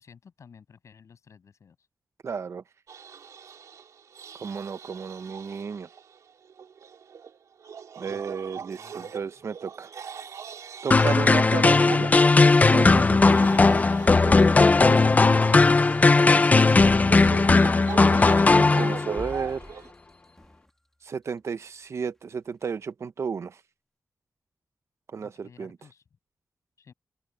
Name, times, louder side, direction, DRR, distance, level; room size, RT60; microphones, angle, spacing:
voice 1, 0.0-1.8 8.0-8.2 8.6-9.3 25.2-26.0 26.8-26.9, left 6 dB, 70° left, 6.8 m, -53 dB
voice 2, 2.2-2.6 4.3-5.9 8.0-9.9 10.8-12.1 12.7-13.4 18.5-19.6 21.0-23.6 25.1-25.8, right 6 dB, 60° right, 1.0 m, -33 dB
sound 1, 2.9-19.9, right 7 dB, 90° right, 2.8 m, -41 dB
sound 2, 10.9-19.3, left 3 dB, 30° left, 0.5 m, -18 dB
sound 3, 16.8-18.1 18.6-20.7 21.3-21.4, left 1 dB, 5° left, 2.7 m, -44 dB
open air
wide cardioid pair, 110°, 5 cm